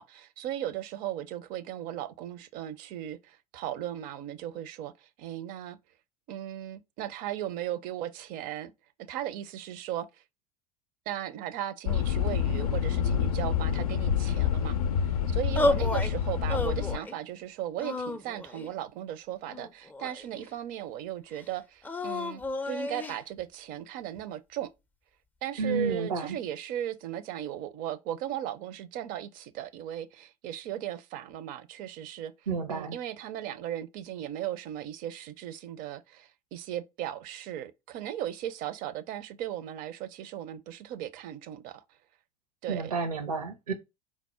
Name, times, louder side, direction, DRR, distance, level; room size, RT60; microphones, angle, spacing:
voice 1, 0.0-5.8 6.3-8.7 9.0-10.2 11.1-22.4 22.7-24.7 25.4-32.3 32.7-41.8 42.6-42.9, right 11 dB, 45° right, 0.5 m, -37 dB
sound 1, 11.9-17.0, left 8 dB, 75° left, 0.4 m, -27 dB
sound 2, 15.6-16.1 16.5-17.2 17.8-18.7 19.5-20.5 21.8-23.2, left 2 dB, 10° left, 0.4 m, -31 dB
voice 2, 25.6-26.4 32.5-33.0 42.7-43.7, right 4 dB, 75° right, 0.9 m, -31 dB
4.6 x 2.1 x 4.2 m
figure-of-eight pair, 75°, 19 cm